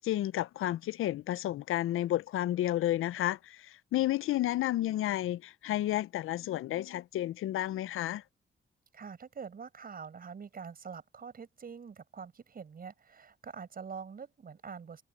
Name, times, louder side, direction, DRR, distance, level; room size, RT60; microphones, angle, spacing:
voice 1, 0.0-8.2, left 14 dB, 85° left, 0.4 m, -31 dB
voice 2, 8.9-15.0, right 6 dB, 45° right, 6.5 m, -45 dB
cardioid pair, 125°, 21 cm